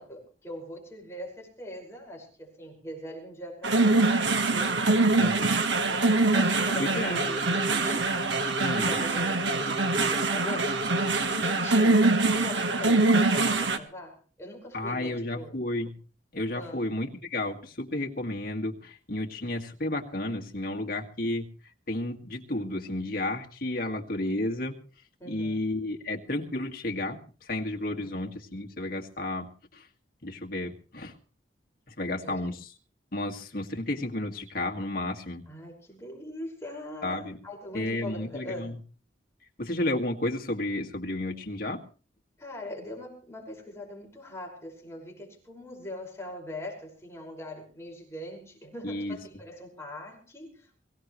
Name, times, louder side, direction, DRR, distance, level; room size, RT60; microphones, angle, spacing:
voice 1, 0.0-4.0 4.5-6.1 6.3-8.1 8.8-10.8 11.3-15.6 16.5-16.8 25.2-25.6 27.9-28.2 32.2-32.5 35.5-38.8 42.4-50.9, left 1 dB, 15° left, -1 dB, 5.6 m, -41 dB
sound 1, 3.6-13.8, right 3 dB, 75° right, 1.5 m, -24 dB
voice 2, 5.2-5.5 6.8-7.2 8.6-9.0 14.7-15.9 16.3-21.5 21.9-24.8 25.2-29.9 30.2-31.2 31.9-32.7 33.1-35.4 37.0-37.4 37.7-38.8 39.6-41.8 48.8-49.2, left 1 dB, 50° left, 2 dB, 2.1 m, -32 dB
23.5 x 16.5 x 3.2 m, 0.38 s
head